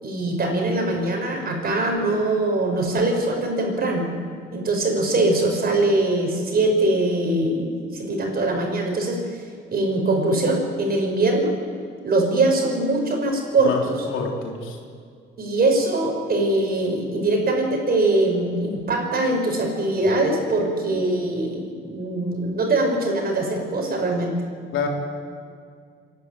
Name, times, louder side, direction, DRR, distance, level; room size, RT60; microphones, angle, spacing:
voice 1, 0.0-4.1 4.5-9.2 9.7-11.5 12.0-14.1 15.4-24.3, right 2 dB, 50° right, 2 dB, 5.5 m, -22 dB
voice 2, 14.1-14.6 24.7-24.9, left 5 dB, 85° left, 1 dB, 3.7 m, -26 dB
27.0 x 11.0 x 9.4 m, 2.2 s
cardioid pair, 90°, 20 cm